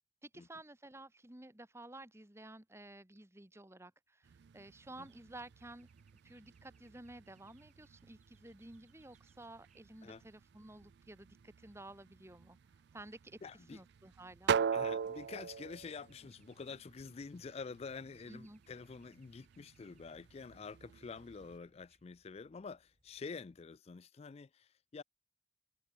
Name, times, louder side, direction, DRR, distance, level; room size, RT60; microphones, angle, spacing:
voice 1, 0.2-5.9 6.2-12.6 12.9-13.4 13.7-14.6 18.3-18.6, right 2 dB, 15° right, 1.4 m, -53 dB
sound 1, 4.2-21.6, right 6 dB, 60° right, 0.4 m, -43 dB
sound 2, 5.4-23.7, right 3 dB, 40° right, 6.2 m, -76 dB
voice 2, 13.4-13.8 14.7-25.0, left 4 dB, 30° left, 0.3 m, -48 dB
head